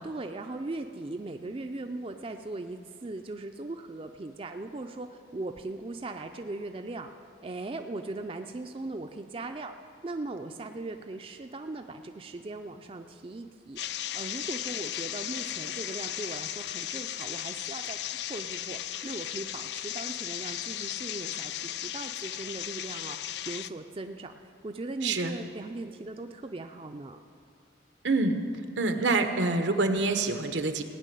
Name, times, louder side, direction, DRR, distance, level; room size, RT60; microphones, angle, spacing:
voice 1, 0.0-7.1 7.4-18.0 18.3-23.2 23.5-27.2, right 2 dB, 30° right, 6 dB, 0.4 m, -39 dB
sound 1, 13.8-23.7, left 12 dB, 70° left, 0.4 m, -36 dB
voice 2, 25.0-25.4 28.0-28.4 28.8-30.8, right 3 dB, 85° right, 7 dB, 1.0 m, -26 dB
17.0 x 5.9 x 9.1 m, 2.4 s
head